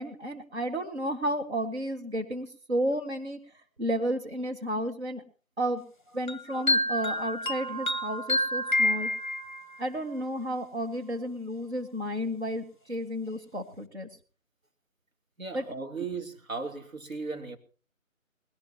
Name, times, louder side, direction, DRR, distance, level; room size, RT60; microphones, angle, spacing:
voice 1, 0.0-3.4 3.8-5.2 5.6-5.8 6.1-9.1 9.8-14.1 15.5-15.6, equal, 50° right, 2.4 m, -32 dB
sound 1, 6.3-9.8, left 1 dB, 35° left, 0.9 m, -28 dB
voice 2, 15.4-17.6, right 4 dB, 75° right, 3.3 m, -36 dB
20.5 x 17.5 x 3.0 m
figure-of-eight pair, 165°, 41 cm